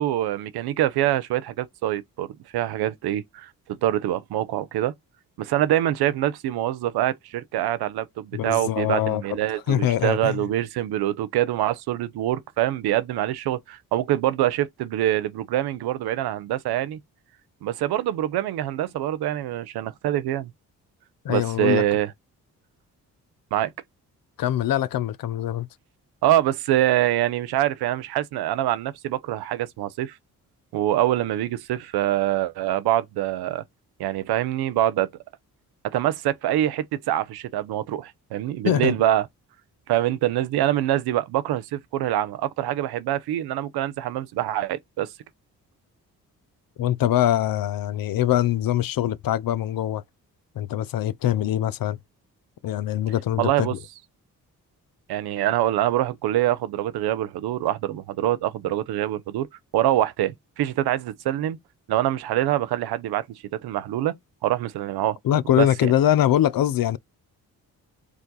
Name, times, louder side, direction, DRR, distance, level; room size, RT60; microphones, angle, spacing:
voice 1, 0.0-2.3 2.5-3.5 3.8-4.9 5.4-17.0 17.6-20.5 21.3-22.1 23.5-23.7 26.2-30.1 30.7-33.6 34.0-35.1 35.9-39.3 39.9-45.1 53.4-53.7 55.1-59.5 59.7-61.6 61.9-63.2 63.6-64.1 64.4-65.2 65.6-65.9, right 13 dB, 80° right, 0.6 m, -25 dB
voice 2, 8.3-9.2 9.7-10.4 21.2-21.8 24.4-25.7 38.6-39.0 46.8-50.0 50.6-52.0 52.6-53.8 65.2-67.0, left 12 dB, 65° left, 0.6 m, -23 dB
4.8 x 2.5 x 4.0 m
supercardioid pair, 55°, 37 cm